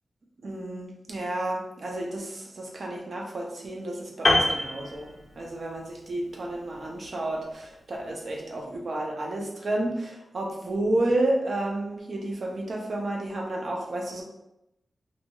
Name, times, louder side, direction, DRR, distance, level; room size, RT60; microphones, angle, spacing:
voice 1, 0.4-5.1 5.3-14.2, right 1 dB, 60° right, 0 dB, 0.6 m, -31 dB
Piano, 4.2-5.7 6.0-6.2, left 1 dB, 40° left, 0.5 m, -25 dB
2.9 x 2.6 x 2.2 m, 0.87 s
wide cardioid pair, 115°, 0 cm